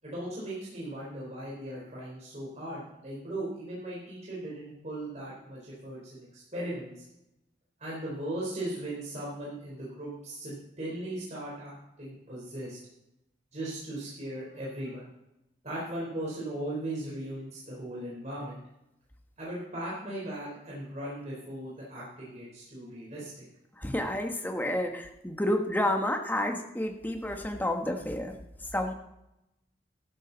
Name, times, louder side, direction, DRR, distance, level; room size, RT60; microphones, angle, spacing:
voice 1, 0.0-7.0 7.8-12.8 13.5-15.1 15.6-18.6 19.4-23.5, right 1 dB, 35° right, -6 dB, 4.0 m, -38 dB
voice 2, 23.8-28.9, left 1 dB, 10° left, 4 dB, 1.3 m, -30 dB
13.0 x 12.0 x 4.0 m, 0.88 s
head